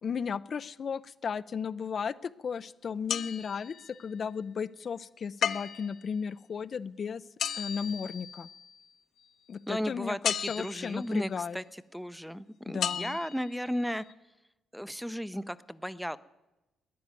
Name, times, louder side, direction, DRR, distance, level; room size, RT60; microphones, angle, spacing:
voice 1, 0.0-7.2 7.6-8.5 9.5-11.6 12.7-13.2, left 6 dB, 50° left, 14 dB, 0.4 m, -35 dB
sound 1, 3.1-4.1 5.4-6.0 7.4-8.7 10.2-11.0 12.8-13.5 14.1-14.2, left 8 dB, 65° left, 0.8 m, -34 dB
voice 2, 9.7-11.6 11.9-14.0 14.7-16.2, equal, ahead, 15 dB, 0.6 m, -34 dB
14.0 x 10.5 x 9.5 m, 1.0 s
cardioid pair, 90°, 0 cm